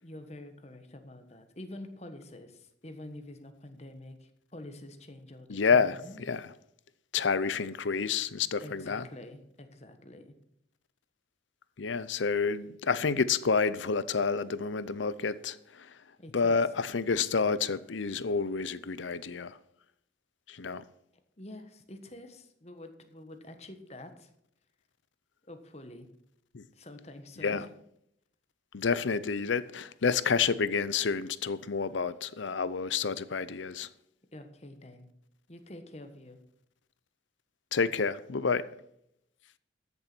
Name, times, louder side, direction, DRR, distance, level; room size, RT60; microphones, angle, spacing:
voice 1, 0.0-6.2 8.6-10.4 16.2-16.6 21.4-24.3 25.5-26.1 26.7-27.7 34.3-35.1 35.5-36.4, left 1 dB, 35° left, 1.3 m, -47 dB
voice 2, 5.5-6.5 7.1-9.1 11.8-15.9 16.3-19.6 20.5-20.8 26.5-26.6 27.4-27.6 28.7-33.9 37.7-38.7, left 5 dB, 90° left, 0.7 m, -29 dB
13.5 x 7.0 x 6.1 m
head